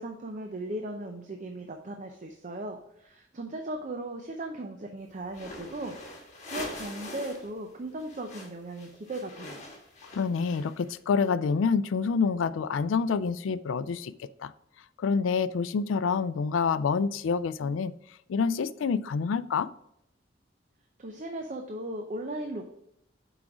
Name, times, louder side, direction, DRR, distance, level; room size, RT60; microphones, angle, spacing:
voice 1, 0.0-9.6 21.0-22.7, right 1 dB, 40° right, 4 dB, 0.6 m, -37 dB
sound 1, 5.3-7.5 7.8-10.9, left 1 dB, 35° left, 1.5 m, -43 dB
voice 2, 10.1-14.5 15.0-17.9 18.3-19.7, left 5 dB, 85° left, 16 dB, 0.4 m, -27 dB
6.1 x 5.0 x 4.8 m, 0.80 s
head